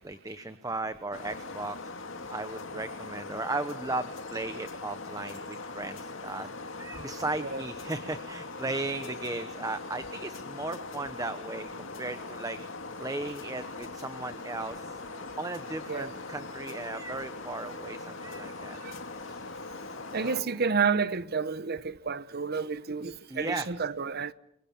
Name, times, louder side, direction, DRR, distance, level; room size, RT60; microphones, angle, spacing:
voice 1, 0.0-1.9 2.3-6.5 6.8-12.6 13.0-15.0 15.4-18.8 19.2-19.6 20.2-20.5 23.3-23.7, right 2 dB, 15° right, 1.0 m, -36 dB
sound 1, 1.1-20.4, left 3 dB, 70° left, 2.3 m, -41 dB
voice 2, 20.1-24.3, right 5 dB, 50° right, 1.0 m, -30 dB
29.0 x 23.0 x 7.4 m
head